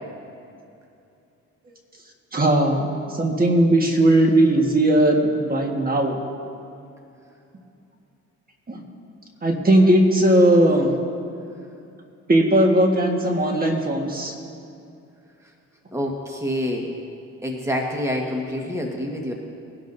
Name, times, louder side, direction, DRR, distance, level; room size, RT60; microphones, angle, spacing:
voice 1, 2.3-2.9 3.2-6.2 8.7-8.8 9.4-10.9 12.3-14.3, right 1 dB, 30° right, 2 dB, 1.6 m, -18 dB
voice 2, 15.9-16.9 17.4-19.3, equal, 10° right, 0 dB, 1.5 m, -27 dB
21.0 x 11.5 x 2.7 m, 2.6 s
cardioid pair, 90°, 30 cm